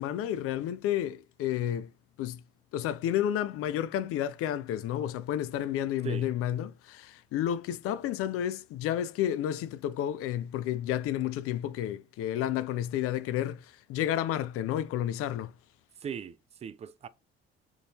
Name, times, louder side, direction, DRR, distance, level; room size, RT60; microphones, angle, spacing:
voice 1, 0.0-1.9 2.2-2.4 2.7-15.5, left 11 dB, 50° left, 0.4 m, -31 dB
voice 2, 16.0-17.1, right 8 dB, 20° right, 0.3 m, -39 dB
3.6 x 2.5 x 2.9 m
hypercardioid pair, 55°, 31 cm